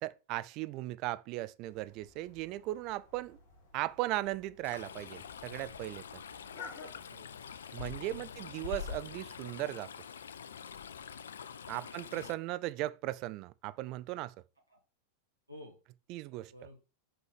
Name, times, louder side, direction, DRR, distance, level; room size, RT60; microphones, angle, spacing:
voice 1, 0.0-3.4 3.7-6.0 7.7-9.9 11.7-14.3 16.1-16.5, right 16 dB, 40° right, 0.3 m, -37 dB
sound 1, 1.6-7.0, left 4 dB, 50° left, 1.7 m, -53 dB
Stream, 4.6-12.3, left 7 dB, 65° left, 0.4 m, -45 dB
voice 2, 7.1-7.4 7.8-8.6 11.6-11.9 14.7-14.8 15.5-15.8 16.5-16.8, left 1 dB, 85° right, 1.3 m, -54 dB
5.7 x 5.4 x 3.4 m
figure-of-eight pair, 90°, 0 cm